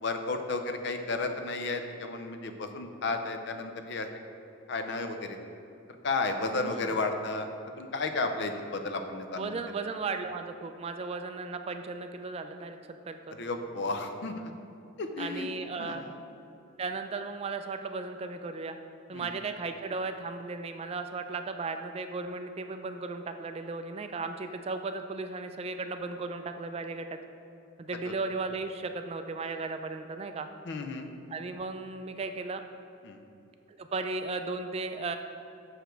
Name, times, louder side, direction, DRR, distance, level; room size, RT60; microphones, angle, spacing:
voice 1, 0.0-4.1 4.7-5.4 6.0-7.5 7.8-9.6 13.4-14.5 15.0-15.5 15.8-16.1 19.1-19.3 30.7-31.1 33.0-33.2, left 3 dB, 60° left, 6 dB, 0.5 m, -33 dB
voice 2, 6.6-6.9 9.4-12.8 13.1-13.4 15.2-16.1 16.8-18.8 19.1-27.1 27.8-30.5 31.3-32.6 33.7-35.2, right 3 dB, 30° right, 7 dB, 0.3 m, -36 dB
6.4 x 4.9 x 4.5 m, 2.7 s
head